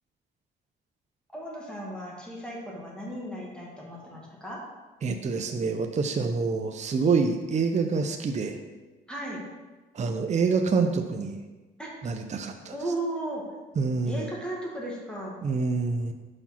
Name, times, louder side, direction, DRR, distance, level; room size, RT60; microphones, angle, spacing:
voice 1, 1.3-4.6 9.1-9.4 11.8-11.9 12.7-13.4 14.0-15.4, right 1 dB, 5° left, -4 dB, 1.9 m, -35 dB
voice 2, 5.0-8.6 9.9-11.4 12.0-12.7 13.8-14.3 15.4-16.1, right 4 dB, 35° right, 6 dB, 0.6 m, -26 dB
5.4 x 5.0 x 5.7 m, 1.2 s
cardioid pair, 90°, 20 cm